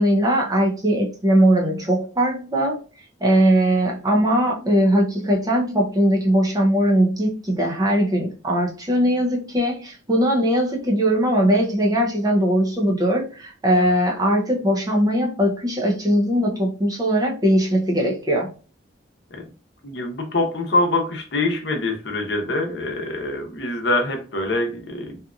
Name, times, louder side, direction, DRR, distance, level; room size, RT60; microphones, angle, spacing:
voice 1, 0.0-2.8 3.2-18.5, equal, 20° right, 0.5 m, -20 dB
voice 2, 19.8-25.2, left 2 dB, 65° left, 0.8 m, -24 dB
2.8 x 2.4 x 2.3 m
head